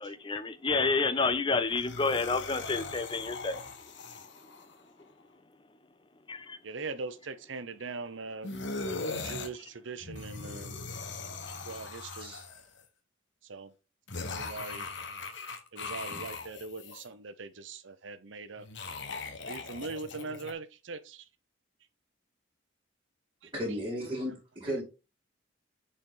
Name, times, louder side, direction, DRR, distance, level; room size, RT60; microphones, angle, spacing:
voice 1, 0.0-3.6 6.3-6.6, left 3 dB, 25° left, 0.6 m, -29 dB
sound 1, 1.7-4.7 8.4-9.5 10.0-12.8 14.1-17.0 18.6-20.5, left 3 dB, 65° left, 1.1 m, -40 dB
voice 2, 6.6-8.5 9.1-10.7 11.6-12.3 13.4-13.7 14.3-14.8 15.7-18.7 19.5-21.2 23.4-23.5 24.2-24.3 24.7-24.8, right 3 dB, 70° right, 0.8 m, -41 dB
voice 3, 23.5-24.8, equal, 25° right, 2.1 m, -35 dB
6.5 x 4.4 x 3.8 m
head